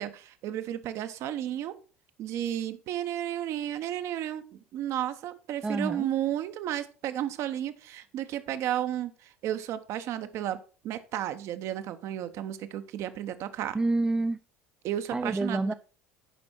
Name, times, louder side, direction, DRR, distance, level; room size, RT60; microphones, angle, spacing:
voice 1, 0.0-1.8 2.2-13.8 14.8-15.7, right 11 dB, 50° right, 0.9 m, -33 dB
voice 2, 5.6-6.1 13.7-14.4 15.1-15.7, right 2 dB, 10° right, 0.3 m, -27 dB
11.0 x 5.3 x 4.3 m
figure-of-eight pair, 65°, 6 cm